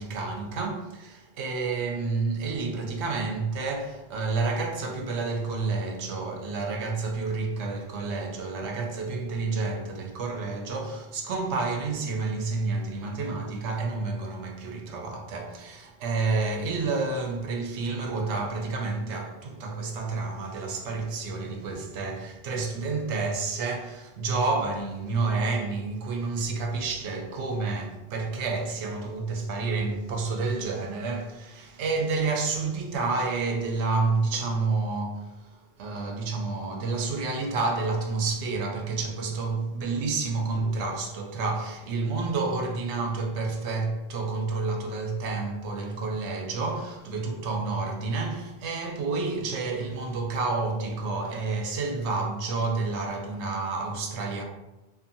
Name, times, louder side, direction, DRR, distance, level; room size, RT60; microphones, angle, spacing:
voice 1, 0.0-54.4, right 3 dB, 90° right, 0.9 m, -29 dB
2.6 x 2.5 x 2.6 m
omnidirectional pair, 1.1 m